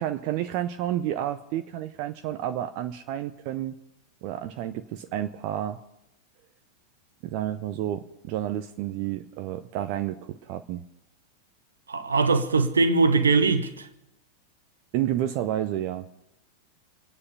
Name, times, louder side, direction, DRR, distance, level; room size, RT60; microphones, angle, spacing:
voice 1, 0.0-3.8 4.2-5.8 7.2-10.8 14.9-16.0, right 12 dB, 45° right, 0.7 m, -30 dB
voice 2, 11.9-13.9, right 4 dB, 70° right, 1.3 m, -21 dB
27.0 x 9.8 x 5.4 m
figure-of-eight pair, 90°, 0 cm